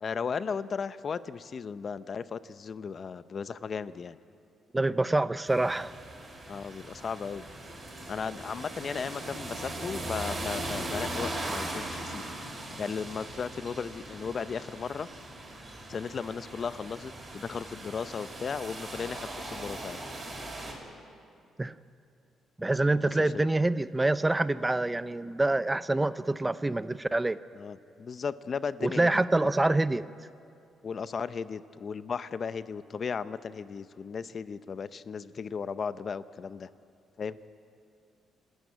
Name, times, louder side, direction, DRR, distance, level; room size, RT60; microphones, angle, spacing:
voice 1, 0.0-4.2 6.5-7.4 8.1-12.3 12.8-15.1 15.9-20.0 23.0-23.1 27.5-29.5 30.8-36.7 37.2-37.4, left 6 dB, 45° left, 14 dB, 0.7 m, -36 dB
voice 2, 4.7-5.9 21.6-21.8 22.6-27.4 28.8-30.1, right 2 dB, 15° right, 14 dB, 0.5 m, -26 dB
sound 1, 5.5-20.7, right 1 dB, 35° right, 6.1 m, -39 dB
28.0 x 13.0 x 9.4 m, 2.5 s
cardioid pair, 100°, 0 cm